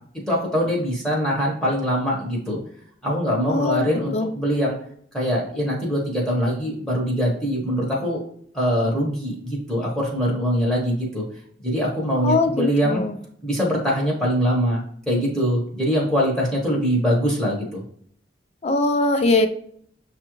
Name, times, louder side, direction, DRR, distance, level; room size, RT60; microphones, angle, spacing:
voice 1, 0.3-2.6 3.0-4.8 5.1-8.2 8.5-11.2 11.6-13.0 13.4-17.8, equal, 5° left, -4 dB, 0.9 m, -23 dB
voice 2, 3.5-4.3 12.2-13.2 18.6-19.5, left 2 dB, 35° left, 7 dB, 0.5 m, -21 dB
6.7 x 2.4 x 3.0 m, 0.63 s
head